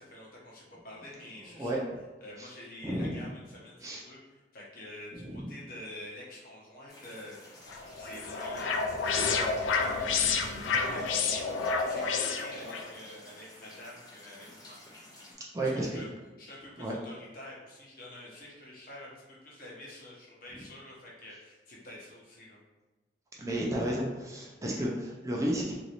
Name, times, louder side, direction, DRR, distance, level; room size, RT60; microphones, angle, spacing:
voice 1, 0.0-1.8 2.2-7.4 8.0-14.7 15.6-16.1 16.4-22.6, left 1 dB, 50° left, -5 dB, 0.9 m, -48 dB
voice 2, 2.8-3.3 3.8-4.0 5.1-5.5 15.5-16.0 16.8-16.9 20.5-20.6 23.4-25.7, right 1 dB, 15° right, -3 dB, 0.4 m, -32 dB
sound 1, 6.9-15.3, left 1 dB, 20° left, 0.7 m, -52 dB
sound 2, 7.7-12.9, left 5 dB, 90° left, 0.4 m, -30 dB
3.0 x 2.6 x 2.9 m, 1.2 s
head